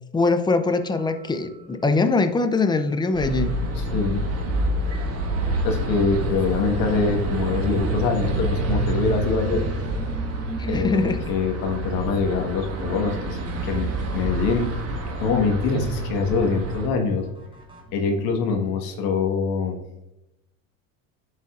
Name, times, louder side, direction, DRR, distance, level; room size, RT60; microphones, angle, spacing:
voice 1, 0.1-3.5 10.6-11.2, left 3 dB, 10° left, 8 dB, 0.6 m, -22 dB
sound 1, 0.6-18.7, equal, 15° right, 1.3 m, -41 dB
sound 2, 3.1-16.9, right 2 dB, 40° right, 1.4 m, -27 dB
voice 2, 3.7-4.2 5.6-9.7 10.7-14.7 15.2-17.2 17.9-19.8, left 4 dB, 60° left, 3 dB, 1.5 m, -24 dB
11.5 x 4.1 x 2.5 m, 0.89 s
hypercardioid pair, 90°, 39 cm